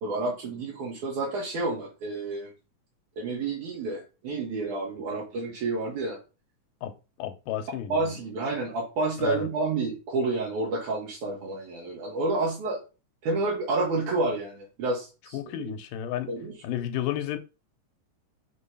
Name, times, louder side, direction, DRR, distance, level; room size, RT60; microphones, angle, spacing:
voice 1, 0.0-2.5 3.2-6.2 7.9-12.8 13.2-15.7 16.3-16.5, right 3 dB, 70° right, 3.0 m, -29 dB
voice 2, 6.8-8.2 9.2-9.5 15.3-16.3 16.6-17.4, left 11 dB, 90° left, 2.4 m, -32 dB
6.2 x 3.1 x 5.5 m
omnidirectional pair, 3.7 m